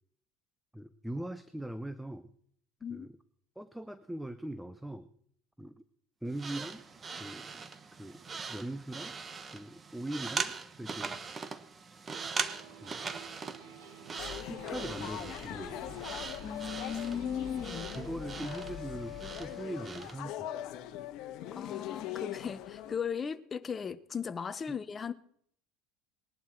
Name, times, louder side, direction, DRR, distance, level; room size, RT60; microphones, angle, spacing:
voice 1, 0.7-2.3 2.9-3.1 3.6-5.1 5.6-5.8 6.2-6.8 7.2-8.2 8.5-9.2 9.5-11.2 12.8-13.0 14.5-16.0 18.0-20.5, right 1 dB, 5° right, 0.7 m, -41 dB
sound 1, 6.3-20.2, right 5 dB, 25° right, 1.1 m, -41 dB
sound 2, 12.1-18.7, right 7 dB, 90° right, 4.4 m, -52 dB
sound 3, 14.2-23.0, left 12 dB, 55° left, 1.4 m, -41 dB
voice 2, 16.4-18.0 21.5-25.1, left 7 dB, 25° left, 0.8 m, -37 dB
20.0 x 11.5 x 4.5 m
supercardioid pair, 125°, 0 cm